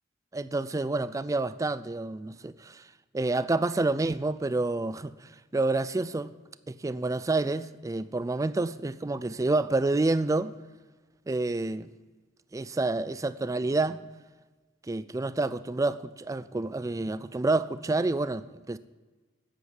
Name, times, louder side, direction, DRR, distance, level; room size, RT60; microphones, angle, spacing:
voice 1, 0.3-2.9 3.1-6.3 6.7-10.6 11.3-11.9 12.5-14.1 14.9-18.8, right 2 dB, 15° right, 0.3 m, -28 dB
10.0 x 8.3 x 9.3 m
head